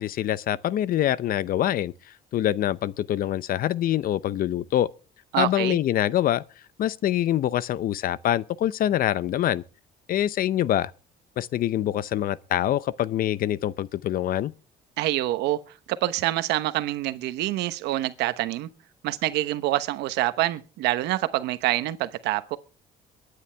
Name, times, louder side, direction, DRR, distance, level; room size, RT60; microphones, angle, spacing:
voice 1, 0.0-1.9 2.3-4.9 5.4-6.4 6.8-9.6 10.1-10.9 11.4-14.5, left 12 dB, 60° left, 0.7 m, -25 dB
voice 2, 5.3-5.8 15.0-15.6 15.9-18.7 19.0-22.6, right 15 dB, 90° right, 1.0 m, -26 dB
23.0 x 9.7 x 3.4 m
cardioid pair, 110°, 17 cm